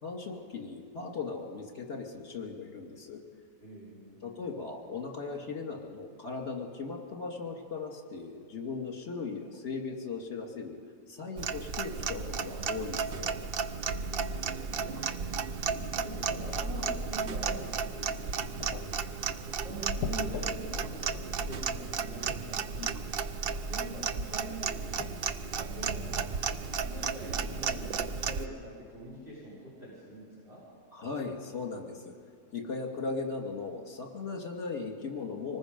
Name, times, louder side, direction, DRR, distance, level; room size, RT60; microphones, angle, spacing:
voice 1, 0.0-3.2 4.2-10.8 11.1-13.3 22.7-23.0 30.9-32.1 32.5-35.6, left 4 dB, 45° left, 1 dB, 2.5 m, -38 dB
voice 2, 3.6-4.3 14.0-15.0 15.5-19.0 19.4-22.7 23.4-26.2 26.5-30.6, right 1 dB, 35° right, -8 dB, 5.9 m, -44 dB
Clock, 11.4-28.5, right 5 dB, 60° right, 0.6 m, -34 dB
sound 1, 18.4-27.3, left 8 dB, 75° left, 1.2 m, -46 dB
25.5 x 19.5 x 5.3 m, 2.1 s
omnidirectional pair, 1.7 m